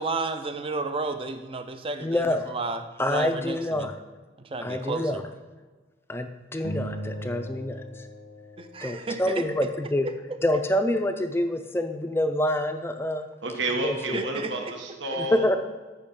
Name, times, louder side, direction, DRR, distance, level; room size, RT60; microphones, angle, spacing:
voice 1, 0.0-2.8 3.1-3.9 4.4-5.2 8.6-9.4 10.1-10.4 14.1-14.7 15.1-15.2, right 3 dB, 30° right, 8 dB, 0.6 m, -32 dB
voice 2, 2.0-2.5 3.0-4.0 4.6-5.2 6.1-8.1 8.8-10.1 10.4-13.3 13.8-14.3 15.2-15.6, left 1 dB, 10° left, 7 dB, 0.5 m, -27 dB
sound 1, 6.6-9.3, equal, 65° left, 0.7 m, -38 dB
voice 3, 13.4-15.5, right 1 dB, 75° right, 2 dB, 1.2 m, -30 dB
13.0 x 5.7 x 3.7 m, 1.3 s
head